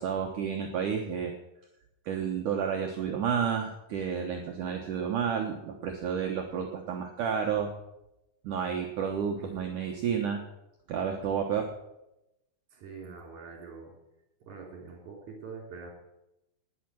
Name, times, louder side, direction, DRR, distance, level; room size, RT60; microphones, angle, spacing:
voice 1, 0.0-1.3 2.1-7.7 8.4-10.4 10.9-11.7, right 7 dB, 85° right, 2 dB, 1.8 m, -31 dB
voice 2, 12.7-13.9 14.5-15.9, right 5 dB, 45° right, 1 dB, 4.0 m, -44 dB
19.0 x 8.6 x 6.2 m, 0.90 s
omnidirectional pair, 5.4 m